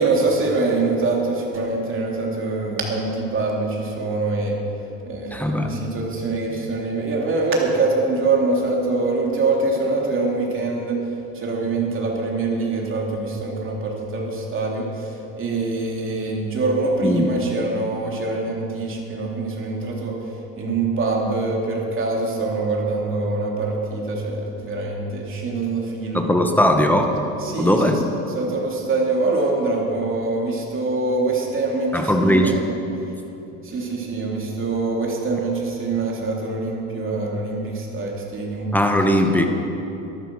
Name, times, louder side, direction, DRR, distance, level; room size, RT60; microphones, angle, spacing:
voice 1, 0.0-4.6 5.0-11.0 11.3-20.2 20.6-26.3 27.4-27.9 28.3-32.6 33.6-38.7, right 3 dB, 40° right, -2 dB, 3.3 m, -24 dB
voice 2, 5.3-5.7 17.0-17.3 26.1-27.1 27.6-28.0 31.9-32.6 38.7-39.5, equal, 5° left, 4 dB, 1.4 m, -18 dB
13.0 x 12.0 x 6.3 m, 3.0 s
cardioid pair, 95°, 32 cm